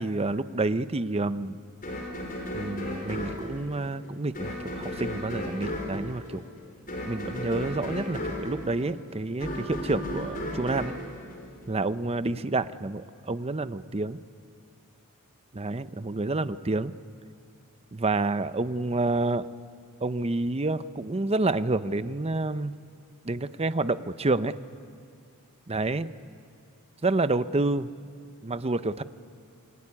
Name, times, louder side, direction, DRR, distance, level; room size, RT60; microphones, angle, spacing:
voice 1, 0.0-1.6 2.5-6.4 7.0-10.9 11.7-14.2 15.5-16.9 17.9-19.5 20.0-22.7 23.2-24.5 25.7-26.1 27.0-27.9 28.4-29.0, right 2 dB, 30° right, 13 dB, 0.7 m, -28 dB
sound 1, 1.8-12.0, left 1 dB, 40° left, 5.5 m, -35 dB
26.5 x 22.0 x 9.8 m, 2.3 s
head